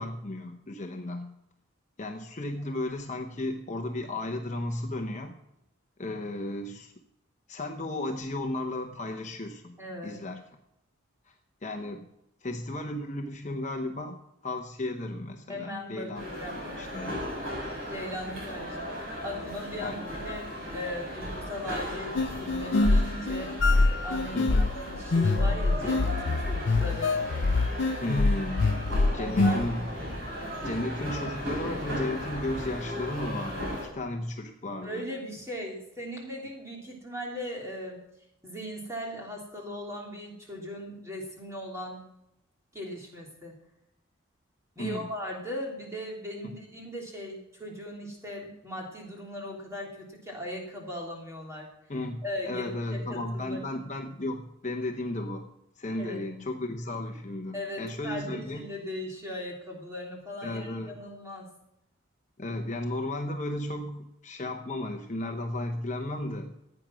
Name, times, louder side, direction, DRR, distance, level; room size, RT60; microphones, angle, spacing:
voice 1, 0.0-1.3 2.0-5.3 6.0-6.9 7.5-9.8 10.0-10.4 11.3-11.4 11.6-12.1 12.4-14.2 14.4-16.2 16.8-17.3 19.8-20.1 24.3-24.7 28.0-28.7 29.1-29.9 30.6-35.1 44.8-45.1 51.9-55.5 55.8-58.6 60.4-61.0 62.4-66.5, left 1 dB, 35° left, 4 dB, 0.9 m, -34 dB
voice 2, 9.8-10.2 15.5-16.7 17.9-23.6 24.0-27.2 29.2-29.7 34.8-38.0 38.4-42.1 42.7-43.6 44.7-51.7 52.2-53.6 55.9-56.2 57.5-61.5, left 1 dB, 15° right, -1 dB, 3.1 m, -38 dB
sound 1, 16.1-33.9, equal, 65° right, 6.7 m, -36 dB
sound 2, 22.2-29.7, left 3 dB, 55° left, 0.5 m, -25 dB
15.5 x 9.0 x 6.1 m, 0.85 s
head